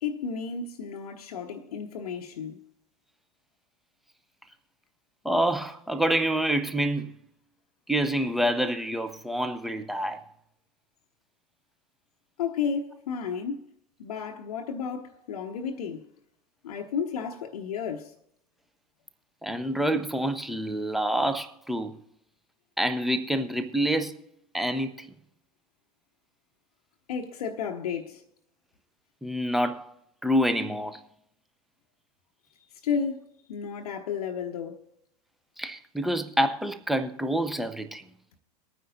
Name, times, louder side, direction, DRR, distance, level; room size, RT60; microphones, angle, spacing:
voice 1, 0.0-2.6 12.4-13.6 14.0-16.1 16.6-18.1 27.1-28.2 32.8-34.8, left 6 dB, 65° left, 0.8 m, -32 dB
voice 2, 5.2-7.1 7.9-10.2 19.4-22.0 22.8-24.1 24.5-25.1 29.2-29.9 30.2-31.0 35.6-38.0, right 1 dB, ahead, 0.8 m, -27 dB
22.5 x 9.3 x 2.7 m
figure-of-eight pair, 85°, 21 cm